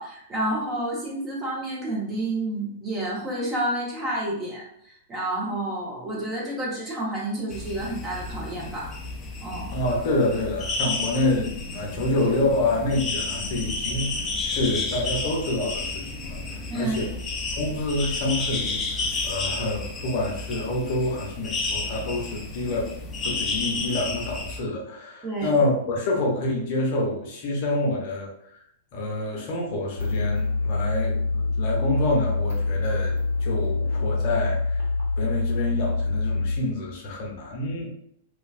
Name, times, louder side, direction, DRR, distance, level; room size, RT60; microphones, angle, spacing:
voice 1, 0.0-8.9 9.4-9.7 16.7-17.1 25.2-25.6, right 1 dB, 25° right, -4 dB, 1.1 m, -30 dB
sound 1, 7.5-24.6, left 3 dB, 20° left, 0.5 m, -31 dB
voice 2, 9.7-14.1 14.4-16.4 16.7-17.1 17.6-22.9 23.2-28.3 28.9-34.9 35.2-37.9, left 2 dB, 50° left, -1 dB, 0.8 m, -27 dB
sound 2, 30.0-36.6, left 3 dB, 65° right, 1.0 m, -25 dB
2.8 x 2.3 x 2.5 m, 0.70 s
hypercardioid pair, 110°, 0 cm